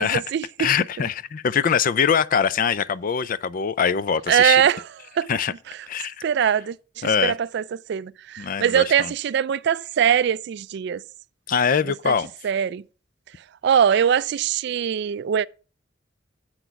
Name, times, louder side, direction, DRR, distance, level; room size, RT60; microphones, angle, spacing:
voice 1, 0.0-0.7 4.3-4.8 5.2-5.3 6.2-7.6 7.9-11.0 12.0-12.1 12.4-12.8 13.6-15.5, right 8 dB, 60° right, 0.3 m, -22 dB
voice 2, 0.6-4.6 5.3-5.5 5.9-6.1 7.0-7.3 8.4-9.1 11.5-12.3, left 7 dB, 45° left, 0.4 m, -23 dB
8.0 x 6.1 x 5.7 m
head